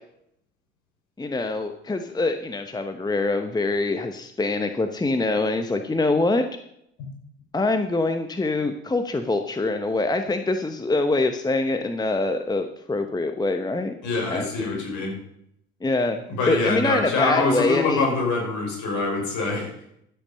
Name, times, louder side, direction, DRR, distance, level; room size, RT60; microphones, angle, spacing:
voice 1, 1.2-6.5 7.5-13.9 14.3-14.8 15.8-18.1, left 2 dB, 10° left, 7 dB, 1.0 m, -24 dB
voice 2, 14.0-15.1 16.3-19.7, left 3 dB, 55° left, 0 dB, 5.4 m, -25 dB
12.5 x 8.3 x 5.4 m, 0.74 s
figure-of-eight pair, 60°, 34 cm